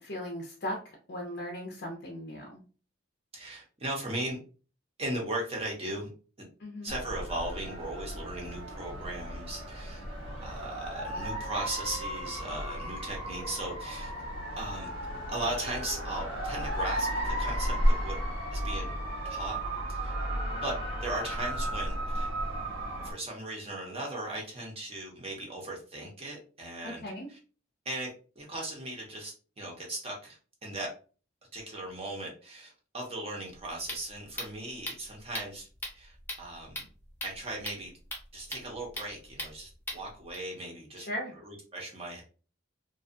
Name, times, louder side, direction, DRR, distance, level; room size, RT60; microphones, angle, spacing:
voice 1, 0.0-2.6 6.6-6.9 26.8-27.3 41.0-41.3, equal, 55° left, 0 dB, 0.5 m, -38 dB
voice 2, 3.3-4.4 5.0-6.1 6.8-10.0 10.4-14.2 14.6-14.9 15.3-18.2 18.5-18.9 19.2-19.6 19.9-20.1 20.6-20.7 21.0-22.3 23.0-27.0 27.3-27.4 27.8-28.1 28.4-30.9 31.5-36.8 37.2-37.9 38.3-41.1 41.4-42.2, right 1 dB, 30° right, -1 dB, 0.7 m, -38 dB
sound 1, 6.9-23.1, equal, 90° right, 1.0 m, -34 dB
sound 2, 33.4-40.4, left 1 dB, 10° left, 0.7 m, -41 dB
2.4 x 2.3 x 2.5 m, 0.37 s
head